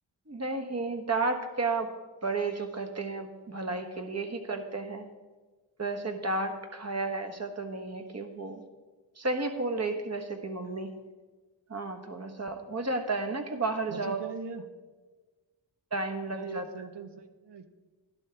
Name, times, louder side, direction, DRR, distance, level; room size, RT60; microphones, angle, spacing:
voice 1, 0.3-1.9 2.2-5.1 5.8-8.6 9.2-10.9 11.7-14.2 15.9-16.6, right 3 dB, 35° right, 5 dB, 1.3 m, -32 dB
voice 2, 13.9-14.7 16.3-17.7, right 5 dB, 65° right, 8 dB, 1.0 m, -40 dB
11.5 x 11.5 x 3.4 m, 1.3 s
cardioid pair, 75°, 45 cm